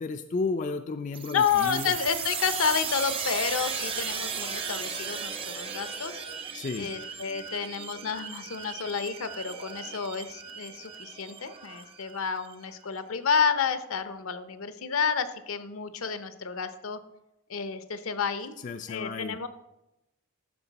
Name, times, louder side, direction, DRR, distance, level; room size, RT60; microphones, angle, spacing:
voice 1, 0.0-1.9 6.5-6.9 18.6-19.4, left 3 dB, 35° left, 6 dB, 0.3 m, -32 dB
sound 1, 1.1-12.5, right 6 dB, 25° right, 0.6 m, -36 dB
voice 2, 1.3-6.2 6.8-17.0 17.5-18.5 18.9-19.5, left 6 dB, 70° left, 11 dB, 0.6 m, -30 dB
13.5 x 4.7 x 4.0 m, 0.91 s
head